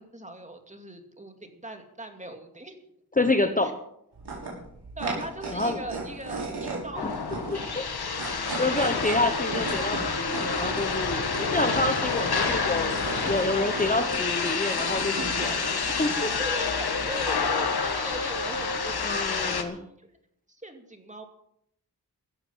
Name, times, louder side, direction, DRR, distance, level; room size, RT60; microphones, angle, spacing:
voice 1, 0.0-2.8 3.6-3.7 5.0-7.1 7.5-7.6 8.8-8.9 12.1-14.6 16.4-19.3 19.5-20.1 20.5-21.2, right 1 dB, 20° right, 5 dB, 2.5 m, -40 dB
voice 2, 3.2-3.7 5.5-5.8 7.5-7.8 8.4-12.9 13.3-16.3 19.0-19.8, left 2 dB, 20° left, 7 dB, 1.1 m, -28 dB
sound 1, 4.1-19.5, right 3 dB, 80° right, 6.3 m, -38 dB
sound 2, 6.9-19.6, left 5 dB, 70° left, 1.8 m, -28 dB
16.5 x 14.0 x 5.7 m, 0.75 s
wide cardioid pair, 120°, 40 cm